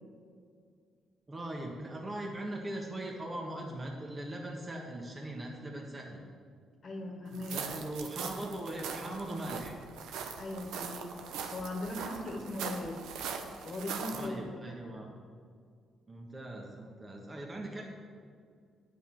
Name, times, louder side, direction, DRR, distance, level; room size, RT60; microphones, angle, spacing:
voice 1, 1.3-6.2 7.5-9.8 14.1-15.1 16.1-17.8, right 1 dB, 25° right, -1 dB, 1.5 m, -40 dB
voice 2, 6.8-7.6 10.4-11.1 11.5-13.0 13.6-14.4 14.7-15.0, left 2 dB, 40° left, 2 dB, 1.6 m, -39 dB
sound 1, 7.3-14.3, right 6 dB, 85° right, 0.9 m, -41 dB
9.3 x 6.1 x 7.5 m, 2.2 s
cardioid pair, 90°, 0 cm